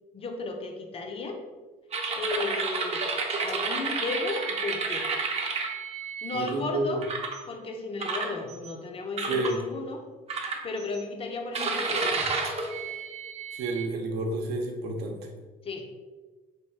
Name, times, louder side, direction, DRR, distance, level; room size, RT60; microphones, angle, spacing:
voice 1, 0.1-1.4 2.2-3.1 3.4-5.1 6.2-7.0 7.5-10.0 10.6-12.3 15.6-15.9, left 3 dB, 35° left, 4 dB, 0.6 m, -34 dB
sound 1, 1.9-6.5 7.0-7.4 8.0-8.7 9.2-9.6 10.3-11.0 11.5-13.9, right 4 dB, 40° right, 0.6 m, -31 dB
voice 2, 6.3-7.0 9.3-9.6 13.5-15.3, right 2 dB, 75° right, 2 dB, 0.7 m, -30 dB
3.2 x 2.4 x 4.4 m, 1.3 s
cardioid pair, 110°, 17 cm